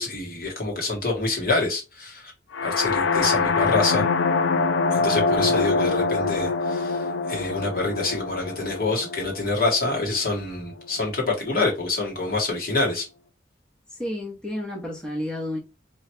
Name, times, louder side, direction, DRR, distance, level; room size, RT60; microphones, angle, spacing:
voice 1, 0.0-2.3 2.6-4.0 4.9-13.1, left 3 dB, 50° left, 1.7 m, -26 dB
sound 1, 2.5-10.4, left 4 dB, 85° left, 0.5 m, -24 dB
voice 2, 13.9-15.6, left 1 dB, 5° left, 1.0 m, -31 dB
3.1 x 3.1 x 4.4 m
head